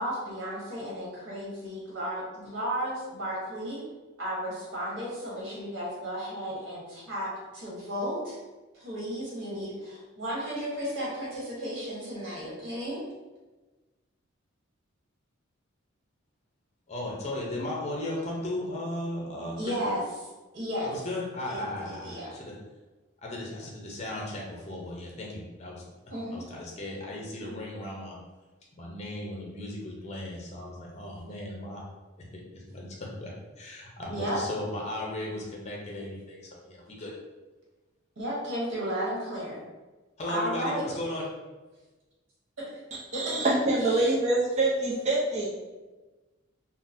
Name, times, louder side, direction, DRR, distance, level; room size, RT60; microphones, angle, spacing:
voice 1, 0.0-3.8 4.2-8.4 8.7-13.0 19.6-20.0 20.5-20.9 21.5-22.3 26.1-26.4 34.1-34.4 38.2-39.6 40.3-40.8 42.6-42.8 43.1-43.4 43.9-44.1, equal, 65° right, -6 dB, 1.2 m, -34 dB
voice 2, 16.9-19.9 20.8-22.5 23.2-25.8 26.3-28.2 28.8-31.8 32.5-32.9 33.2-33.3 33.6-37.1 40.2-41.4, left 1 dB, 30° left, -2 dB, 0.6 m, -36 dB
voice 3, 43.1-45.5, right 2 dB, 35° right, -6 dB, 0.6 m, -25 dB
3.7 x 2.1 x 2.6 m, 1.2 s
head